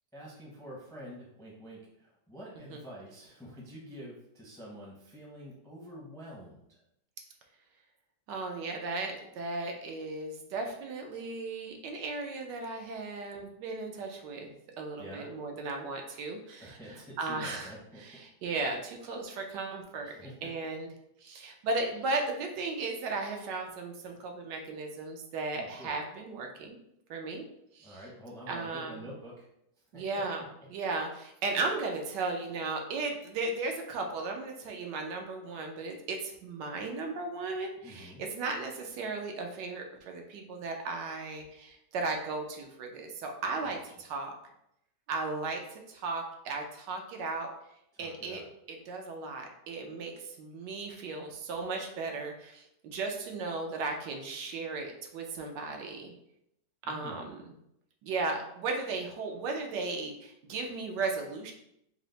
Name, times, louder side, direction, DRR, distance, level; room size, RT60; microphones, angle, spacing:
voice 1, 0.1-6.8 15.0-15.3 16.6-18.0 20.0-20.5 25.5-25.9 27.8-29.5 29.9-30.0 37.8-38.2 43.6-43.8 47.9-48.5 56.8-57.3, equal, 5° left, -3 dB, 0.4 m, -47 dB
voice 2, 8.3-20.1 20.4-20.9 21.2-26.8 27.1-27.4 27.7-28.0 28.5-29.1 29.9-44.3 45.1-47.5 48.0-48.4 48.7-56.1 56.9-57.5 58.0-61.5, right 3 dB, 85° right, 3 dB, 1.3 m, -36 dB
4.5 x 2.0 x 3.9 m, 0.78 s
omnidirectional pair, 1.8 m